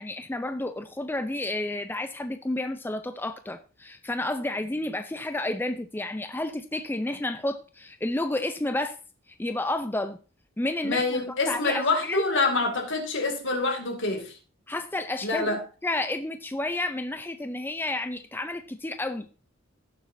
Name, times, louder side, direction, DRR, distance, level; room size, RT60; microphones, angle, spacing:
voice 1, 0.0-9.0 9.4-10.2 10.6-12.2 14.7-15.6 15.8-19.3, left 2 dB, 10° left, 0.5 m, -31 dB
voice 2, 10.8-14.4 15.2-15.6, left 3 dB, 65° left, 2.2 m, -26 dB
17.0 x 7.2 x 2.6 m
head